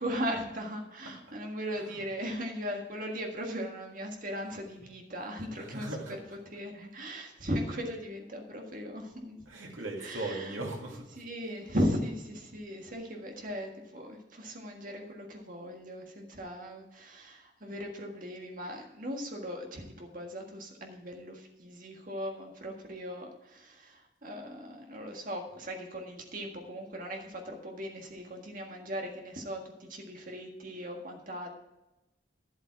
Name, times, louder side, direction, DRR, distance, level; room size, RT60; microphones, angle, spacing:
voice 1, 0.0-5.9 6.5-9.4 10.0-10.5 11.2-31.5, equal, 45° right, 2 dB, 1.7 m, -38 dB
voice 2, 5.5-6.4 9.5-11.2, right 2 dB, 85° right, -1 dB, 2.5 m, -39 dB
11.5 x 7.9 x 4.7 m, 0.97 s
head